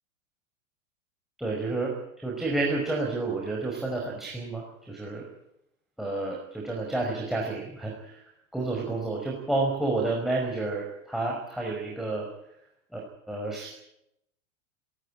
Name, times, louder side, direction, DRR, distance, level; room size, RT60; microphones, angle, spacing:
voice 1, 1.4-5.3 6.0-8.2 8.5-12.3 12.9-13.7, right 2 dB, ahead, 1 dB, 5.3 m, -30 dB
29.5 x 13.5 x 8.8 m, 0.82 s
figure-of-eight pair, 100°, 40 cm